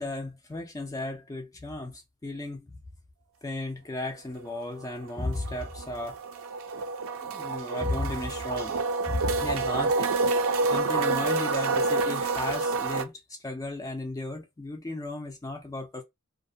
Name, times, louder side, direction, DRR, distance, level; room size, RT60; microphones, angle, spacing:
voice 1, 0.0-2.8 3.4-6.2 7.2-8.8 9.0-10.1 10.7-16.0, left 2 dB, 15° left, 0.3 m, -34 dB
sound 1, 4.4-4.5 4.8-13.0, right 3 dB, 65° right, 0.4 m, -28 dB
2.5 x 2.0 x 2.5 m
head